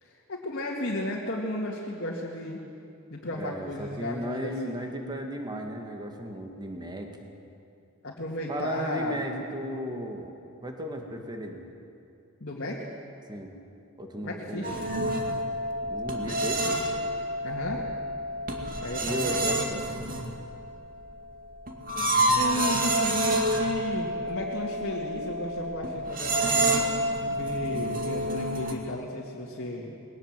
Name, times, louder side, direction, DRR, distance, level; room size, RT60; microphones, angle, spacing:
voice 1, 0.0-2.6 3.1-4.7 8.0-9.2 12.4-12.8 14.2-14.9 16.2-16.8 17.4-17.9 18.8-19.7 22.3-29.9, left 1 dB, 55° left, -4 dB, 2.2 m, -34 dB
voice 2, 3.3-7.3 8.5-10.3 10.6-11.6 13.3-13.5 14.0-14.8 15.8-16.7 19.0-19.9, equal, 20° right, 3 dB, 1.9 m, -35 dB
sound 1, 14.6-28.7, right 1 dB, 40° right, 2.1 m, -29 dB
21.0 x 18.5 x 7.6 m, 2.6 s
head